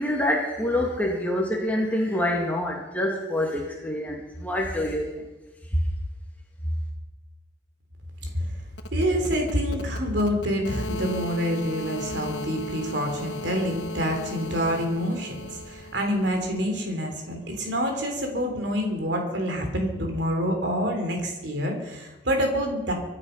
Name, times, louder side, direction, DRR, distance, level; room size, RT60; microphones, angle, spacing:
voice 1, 0.0-5.2 5.7-5.8, left 1 dB, 10° left, -2 dB, 2.4 m, -26 dB
sound 1, 8.7-16.6, left 1 dB, 70° left, 1.2 m, -37 dB
voice 2, 8.9-22.9, equal, 65° right, 3 dB, 3.4 m, -27 dB
25.0 x 9.9 x 5.8 m, 1.1 s
head